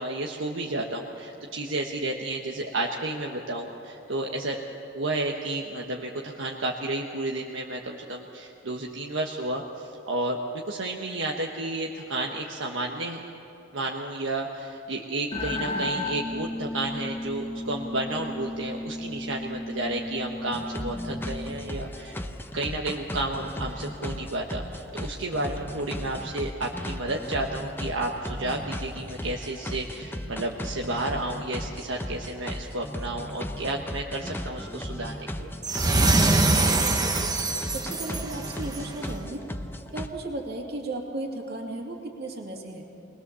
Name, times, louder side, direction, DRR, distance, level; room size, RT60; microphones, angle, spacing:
voice 1, 0.0-4.6 4.9-13.2 13.7-22.2 22.5-35.5, right 2 dB, 75° right, 0 dB, 1.3 m, -32 dB
sound 1, 15.3-21.7, left 2 dB, 30° left, 1.1 m, -34 dB
sound 2, 20.5-40.1, left 1 dB, 10° left, 0.8 m, -36 dB
sound 3, 35.6-38.9, right 2 dB, 20° right, 1.1 m, -23 dB
voice 2, 36.9-37.4 37.7-39.4 39.9-42.9, right 2 dB, 55° right, 0 dB, 2.6 m, -35 dB
21.5 x 20.5 x 7.0 m, 2.9 s
head